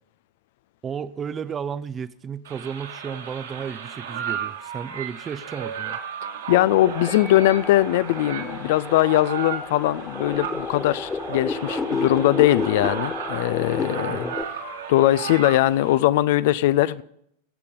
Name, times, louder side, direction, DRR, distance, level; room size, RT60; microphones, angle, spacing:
voice 1, 0.8-6.0 14.1-14.4, right 7 dB, 20° right, 0.6 m, -33 dB
sound 1, 2.4-16.0, right 7 dB, 65° right, 2.3 m, -35 dB
voice 2, 6.5-14.3 14.9-17.0, left 14 dB, 50° left, 0.5 m, -20 dB
sound 2, 6.5-14.4, left 3 dB, 15° left, 1.6 m, -31 dB
19.5 x 8.3 x 5.3 m
figure-of-eight pair, 90°, 0 cm